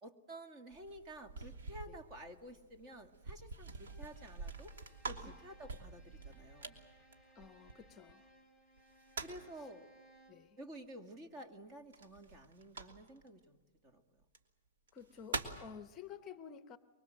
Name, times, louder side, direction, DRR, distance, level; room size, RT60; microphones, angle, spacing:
voice 1, 0.0-4.7 5.1-6.8 9.2-9.8 10.6-14.0, right 1 dB, 30° right, 2.2 m, -52 dB
sound 1, 0.7-8.1 8.8-9.6 11.9-13.3 14.2-14.4 14.9-15.7, right 3 dB, 85° right, 2.9 m, -46 dB
Bowed string instrument, 3.7-10.5, equal, 10° right, 4.3 m, -65 dB
voice 2, 7.3-8.2 9.6-9.7 10.3-10.6 14.9-16.8, left 7 dB, 25° left, 0.9 m, -52 dB
24.5 x 23.5 x 7.8 m
hypercardioid pair, 150°, 0 cm